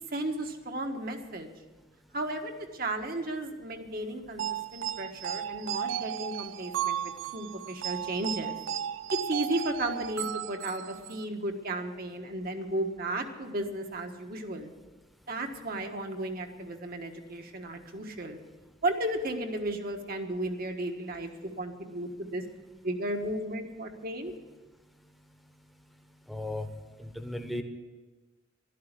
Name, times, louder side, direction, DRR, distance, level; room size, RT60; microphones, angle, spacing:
voice 1, 0.1-1.5 2.1-4.4 4.7-8.6 9.1-14.7 15.3-18.4 18.8-21.3 21.6-22.4 22.8-24.3, right 1 dB, 50° right, 4 dB, 1.5 m, -34 dB
sound 1, 4.4-11.2, right 10 dB, 80° right, 0.4 m, -35 dB
voice 2, 26.3-26.7 27.0-27.6, left 1 dB, ahead, 6 dB, 1.2 m, -35 dB
12.0 x 11.5 x 8.2 m, 1.3 s
head